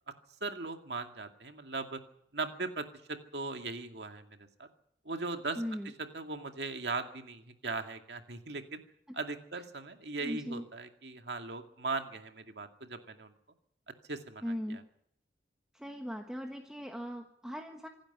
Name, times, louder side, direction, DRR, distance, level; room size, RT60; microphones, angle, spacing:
voice 1, 0.4-2.0 2.3-4.2 4.6-4.7 5.1-5.6 6.1-8.8 9.1-13.3 14.1-14.8, right 3 dB, 65° right, 5 dB, 2.3 m, -39 dB
voice 2, 5.6-5.9 9.1-9.2 10.2-10.6 14.4-14.8 15.7-17.9, equal, 5° right, 3 dB, 1.4 m, -39 dB
26.0 x 12.0 x 9.3 m, 0.75 s
head